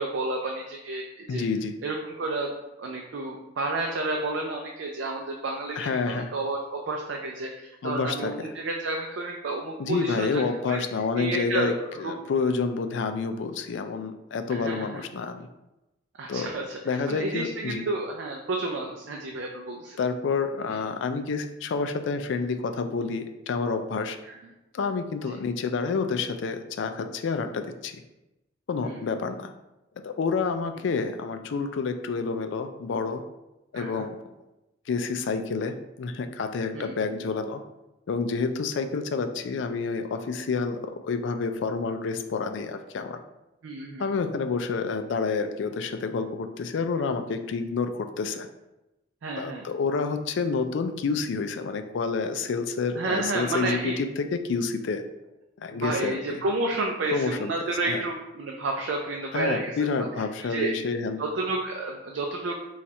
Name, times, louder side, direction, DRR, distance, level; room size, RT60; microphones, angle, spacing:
voice 1, 0.0-1.4 1.8-2.5 2.8-10.4 10.7-10.8 11.2-12.1 14.5-15.1 16.2-20.0 24.2-24.4 25.2-25.4 28.8-29.0 33.7-34.0 36.7-36.9 43.6-44.1 49.2-49.7 52.9-54.0 55.7-59.8 60.4-60.7 61.2-62.5, right 2 dB, 70° right, 1 dB, 0.5 m, -31 dB
voice 2, 1.3-1.7 5.8-6.3 7.8-8.5 9.8-15.5 16.3-16.5 16.9-17.8 20.0-24.2 24.7-28.0 28.7-29.5 30.0-33.2 33.7-34.2 34.9-37.6 38.1-43.2 44.0-48.5 49.4-55.0 55.6-56.2 57.1-57.5 57.9-58.0 59.3-61.2, left 4 dB, 70° left, 8 dB, 0.4 m, -29 dB
4.2 x 2.4 x 4.2 m, 0.97 s
head